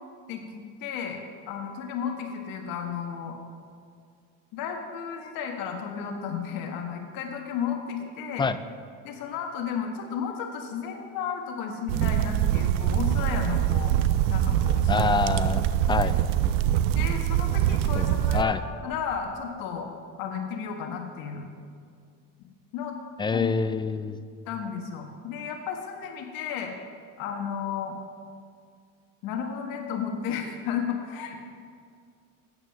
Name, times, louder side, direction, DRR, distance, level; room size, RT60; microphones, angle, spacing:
voice 1, 0.3-1.2 1.5-3.4 4.5-8.5 9.0-14.0 14.3-15.4 15.9-16.1 16.9-18.6 18.8-19.9 20.2-21.5 22.7-23.0 23.3-23.5 24.5-26.7 27.2-27.9 29.2-31.4, left 7 dB, 65° left, 3 dB, 1.5 m, -33 dB
sound 1, 11.9-18.4, right 11 dB, 80° right, 0.6 m, -24 dB
voice 2, 14.9-15.6 15.9-16.1 18.0-18.1 18.3-18.6 23.2-24.2, left 4 dB, 15° left, 12 dB, 0.4 m, -25 dB
9.1 x 8.8 x 6.6 m, 2.2 s
supercardioid pair, 100°, 37 cm